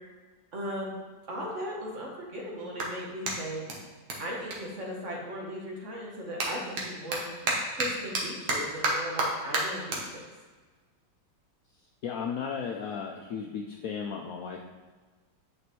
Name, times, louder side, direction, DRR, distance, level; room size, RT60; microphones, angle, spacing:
voice 1, 0.5-0.9 1.3-3.6 4.2-7.2 7.7-10.2, equal, 45° right, -2 dB, 1.3 m, -37 dB
Clapping, 1.4-5.5 5.8-12.4, right 2 dB, 65° right, 1.6 m, -34 dB
voice 2, 12.0-14.6, left 6 dB, 70° left, 1 dB, 0.8 m, -35 dB
8.3 x 5.0 x 3.1 m, 1.3 s
omnidirectional pair, 1.9 m